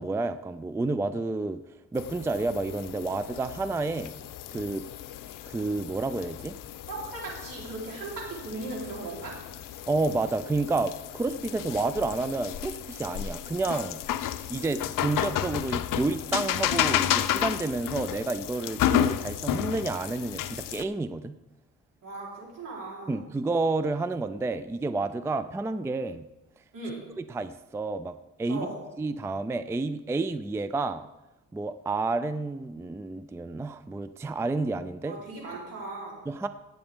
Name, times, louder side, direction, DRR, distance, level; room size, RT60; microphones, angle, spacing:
voice 1, 0.0-1.6 1.9-4.2 4.5-4.8 5.5-6.5 9.9-14.0 14.5-21.3 23.1-26.3 27.2-28.7 29.0-31.1 31.5-35.2 36.3-36.5, right 3 dB, 10° right, 12 dB, 0.3 m, -30 dB
sound 1, 1.9-20.8, left 11 dB, 80° left, 0.6 m, -32 dB
voice 2, 6.9-9.3 22.0-23.2 26.7-27.0 28.5-28.8 35.0-36.2, right 2 dB, 75° right, -3 dB, 3.8 m, -37 dB
16.5 x 8.0 x 3.6 m, 0.99 s
cardioid pair, 115°, 32 cm